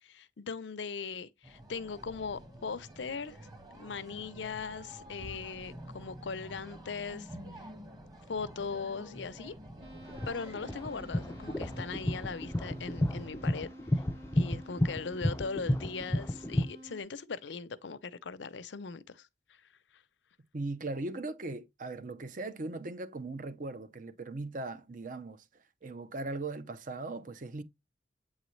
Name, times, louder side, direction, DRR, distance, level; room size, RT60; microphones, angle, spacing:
voice 1, 0.0-3.4 3.7-7.4 8.3-9.5 10.3-14.0 14.3-19.6 19.9-20.0, left 5 dB, 85° left, 0.6 m, -39 dB
sound 1, 1.4-13.3, equal, 20° right, 1.3 m, -48 dB
sound 2, 9.8-17.0, right 1 dB, 90° right, 1.8 m, -50 dB
sound 3, 10.1-16.6, left 1 dB, 15° left, 0.4 m, -31 dB
voice 2, 20.5-27.6, right 2 dB, 50° right, 0.7 m, -39 dB
8.5 x 4.0 x 3.1 m
head